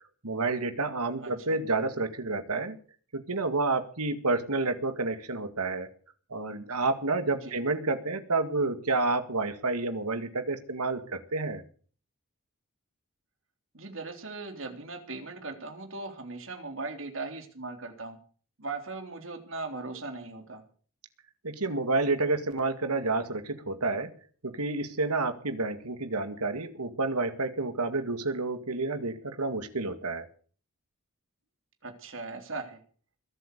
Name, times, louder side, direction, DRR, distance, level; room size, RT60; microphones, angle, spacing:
voice 1, 0.2-2.8 3.1-5.9 6.3-11.6 21.4-24.1 24.4-30.3, right 3 dB, 90° right, 9 dB, 2.0 m, -29 dB
voice 2, 1.2-1.6 7.4-7.5 13.7-18.2 18.6-20.6 31.8-32.8, right 3 dB, 60° right, 6 dB, 3.4 m, -39 dB
22.0 x 8.5 x 6.7 m, 0.42 s
head